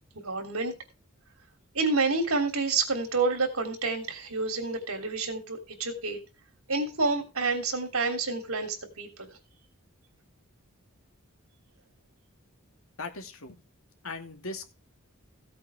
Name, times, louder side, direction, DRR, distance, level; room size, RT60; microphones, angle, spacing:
voice 1, 0.2-0.7 1.7-6.2 6.7-9.3, right 3 dB, 80° right, 4 dB, 3.2 m, -29 dB
voice 2, 13.0-13.5 14.0-14.7, left 3 dB, 75° left, 5 dB, 2.2 m, -38 dB
16.0 x 8.5 x 3.6 m, 0.28 s
head